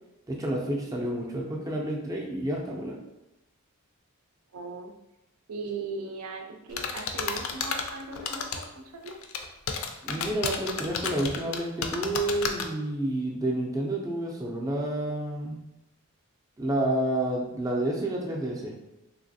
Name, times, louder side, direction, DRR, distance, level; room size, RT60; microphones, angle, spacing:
voice 1, 0.3-3.0 10.0-15.6 16.6-18.7, right 1 dB, 15° right, -1 dB, 0.3 m, -29 dB
voice 2, 4.5-4.9 5.5-9.2, right 4 dB, 85° right, 4 dB, 0.5 m, -38 dB
sound 1, 6.8-8.7 9.1-12.6, left 6 dB, 60° left, 0.3 m, -31 dB
3.2 x 2.9 x 2.6 m, 0.92 s
head